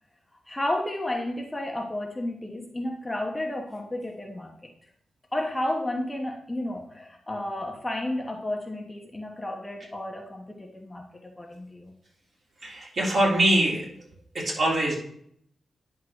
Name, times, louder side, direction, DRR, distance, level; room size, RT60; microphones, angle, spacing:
voice 1, 0.5-4.7 5.3-11.9, left 1 dB, 15° left, 2 dB, 1.0 m, -32 dB
voice 2, 12.6-13.8 14.3-15.0, right 1 dB, 50° right, -4 dB, 3.4 m, -23 dB
9.9 x 3.7 x 6.3 m, 0.68 s
wide cardioid pair, 105°, 0 cm